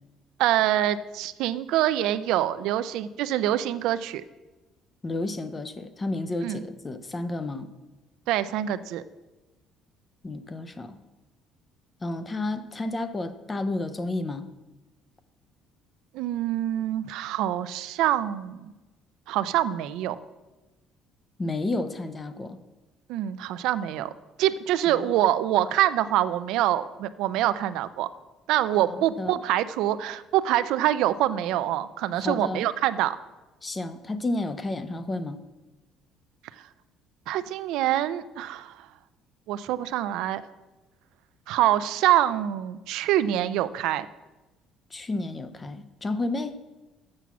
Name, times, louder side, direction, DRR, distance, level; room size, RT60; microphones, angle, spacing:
voice 1, 0.4-4.2 6.4-6.6 8.3-9.0 16.1-18.7 19.3-20.2 23.1-24.1 24.4-28.1 28.5-33.2 37.3-38.9 39.5-40.4 41.5-44.1, right 12 dB, 75° right, 13 dB, 0.4 m, -25 dB
voice 2, 5.0-7.7 10.2-10.9 12.0-14.5 21.4-22.6 24.9-25.1 28.9-29.4 32.2-32.7 33.6-35.4 44.9-46.6, left 2 dB, 15° left, 11 dB, 0.5 m, -31 dB
7.5 x 6.0 x 7.0 m, 1.1 s
cardioid pair, 165°, 0 cm